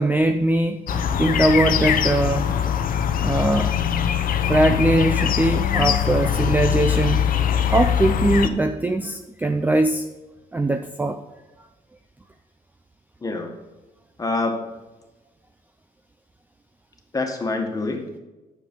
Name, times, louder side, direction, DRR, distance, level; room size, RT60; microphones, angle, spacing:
voice 1, 0.0-2.6 3.2-3.9 4.3-7.3 7.7-10.1 10.5-11.2, right 2 dB, 10° right, 7 dB, 0.4 m, -21 dB
sound 1, 0.9-8.5, left 9 dB, 60° left, 0.8 m, -22 dB
voice 2, 13.2-13.5 14.2-14.7 17.1-18.2, left 3 dB, 20° left, 3 dB, 1.6 m, -26 dB
9.3 x 6.8 x 5.4 m, 1.1 s
cardioid pair, 130°, 16 cm